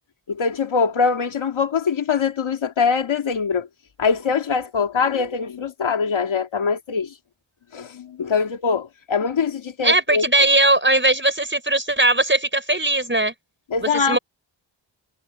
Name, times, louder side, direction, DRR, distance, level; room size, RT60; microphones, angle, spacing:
voice 1, 0.3-3.7 4.0-7.2 7.7-10.3 13.7-14.2, left 5 dB, 90° left, 2.1 m, -23 dB
voice 2, 9.8-13.3 14.1-14.2, right 2 dB, 25° right, 5.4 m, -19 dB
cardioid pair, 60°, 46 cm